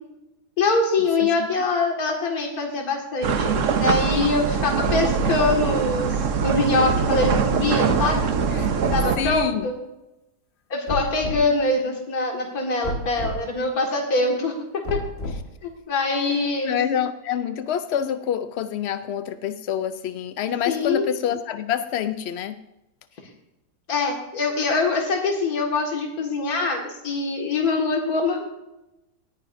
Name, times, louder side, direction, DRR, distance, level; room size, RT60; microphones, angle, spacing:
voice 1, 0.6-6.1 6.4-8.3 8.9-9.7 10.7-15.0 15.6-16.8 20.7-21.1 23.9-28.5, left 3 dB, 65° left, 1 dB, 2.4 m, -24 dB
sound 1, 3.2-9.2, right 6 dB, 55° right, 1.1 m, -23 dB
sound 2, 4.9-5.5 6.9-7.4 8.9-9.5 10.9-11.5 12.8-13.4 14.9-15.6, left 1 dB, 40° left, 1.6 m, -30 dB
voice 2, 9.2-9.7 16.6-22.6, left 9 dB, 80° left, 11 dB, 0.5 m, -27 dB
19.0 x 9.9 x 2.6 m, 0.95 s
omnidirectional pair, 1.8 m